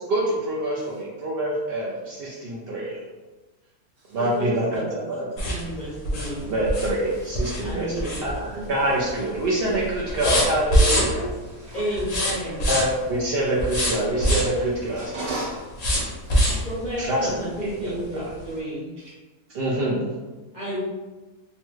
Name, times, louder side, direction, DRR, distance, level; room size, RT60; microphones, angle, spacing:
voice 1, 0.1-3.0 4.1-5.2 6.5-11.2 12.7-15.1 17.0-17.3 17.6-18.2 19.5-20.1, right 1 dB, 80° right, -5 dB, 0.5 m, -25 dB
voice 2, 4.2-5.1 5.4-6.5 7.6-8.2 11.7-12.6 16.6-18.9 20.5-20.8, equal, 45° left, -9 dB, 0.6 m, -31 dB
sound 1, 5.4-8.7 9.1-9.4 9.7-11.4 11.9-13.1 13.6-14.6 15.8-16.7 17.2-17.3 17.7-17.8, equal, 90° left, 0.3 m, -23 dB
voice 3, 10.9-12.0 12.7-12.8 14.9-16.7 19.0-19.1, right 2 dB, 55° right, -6 dB, 1.2 m, -37 dB
3.0 x 2.3 x 3.0 m, 1.2 s
omnidirectional pair, 1.6 m